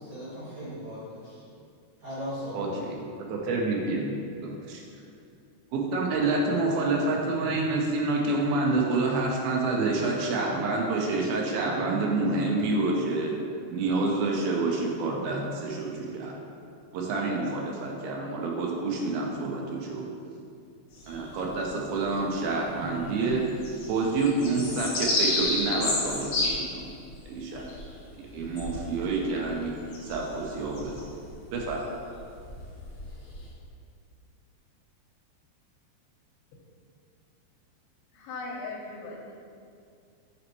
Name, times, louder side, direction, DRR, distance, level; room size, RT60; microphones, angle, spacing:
voice 1, 0.0-1.4 2.0-2.7, equal, 55° right, -14 dB, 2.3 m, -38 dB
voice 2, 2.5-2.9 3.3-4.1 4.4-4.8 5.7-13.3 13.7-16.4 16.9-20.4 21.1-23.6 23.9-26.9 27.3-27.6 28.1-29.8 30.0-31.1 31.5-31.8, right 3 dB, 85° right, -1 dB, 2.4 m, -28 dB
sound 1, 20.9-22.0 22.4-22.5 22.8-33.5, left 2 dB, 60° left, 1.4 m, -32 dB
voice 3, 38.1-39.3, left 3 dB, 75° left, -2 dB, 2.6 m, -38 dB
7.9 x 4.2 x 3.0 m, 2.4 s
omnidirectional pair, 4.4 m